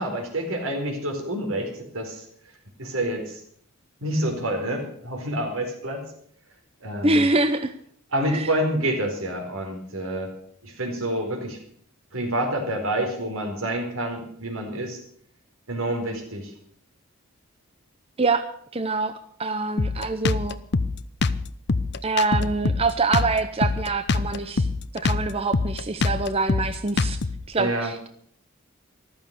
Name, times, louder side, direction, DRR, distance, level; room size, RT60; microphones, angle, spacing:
voice 1, 0.0-2.3 2.8-3.4 4.0-6.0 6.8-7.3 8.1-10.3 10.6-11.6 12.1-15.0 15.7-16.5 27.6-27.9, right 1 dB, 75° right, 3 dB, 4.6 m, -28 dB
voice 2, 7.0-7.7 8.3-8.5 18.2-18.4 18.7-19.1 19.4-20.6 22.0-24.7 24.9-27.2 27.5-28.1, right 3 dB, 25° right, 10 dB, 0.7 m, -25 dB
Drum kit, 19.8-27.4, left 3 dB, 50° left, 0.7 m, -25 dB
14.5 x 13.0 x 6.8 m, 0.62 s
head